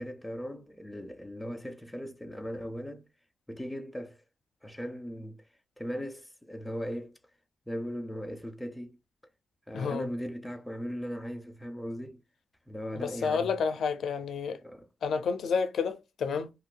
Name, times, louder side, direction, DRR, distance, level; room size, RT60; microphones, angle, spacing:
voice 1, 0.0-3.1 3.5-4.2 4.6-5.4 5.8-7.2 7.7-9.0 9.7-12.2 12.7-13.5 14.6-14.9, equal, 5° left, 0.4 m, -38 dB
voice 2, 9.7-10.1 12.9-14.6 15.0-16.5, left 5 dB, 65° left, 0.5 m, -30 dB
2.6 x 2.2 x 3.7 m
wide cardioid pair, 165°, 0 cm